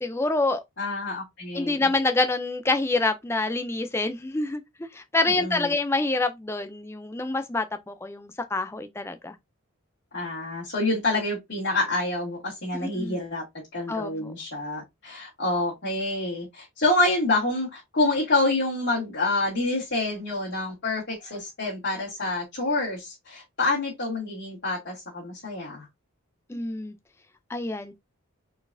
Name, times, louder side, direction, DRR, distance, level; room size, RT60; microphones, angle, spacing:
voice 1, 0.0-0.6 1.5-9.3 12.7-13.2 13.9-14.3 26.5-26.9 27.5-27.9, left 2 dB, 10° left, 0.4 m, -27 dB
voice 2, 0.8-1.8 5.4-5.7 10.1-13.4 13.7-25.9, left 2 dB, 55° left, 2.1 m, -27 dB
4.5 x 4.0 x 2.6 m
head